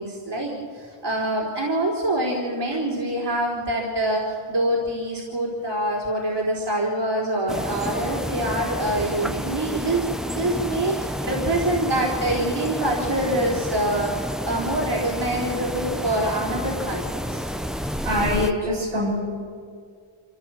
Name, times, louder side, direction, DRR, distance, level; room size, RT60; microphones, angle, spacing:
voice 1, 0.0-10.1 10.3-17.4, right 1 dB, 55° right, -3 dB, 4.1 m, -25 dB
sound 1, 7.5-18.5, equal, ahead, 1.0 m, -30 dB
voice 2, 18.0-19.2, left 1 dB, 90° right, -5 dB, 7.5 m, -23 dB
25.0 x 15.0 x 7.8 m, 2.1 s
cardioid pair, 50°, 49 cm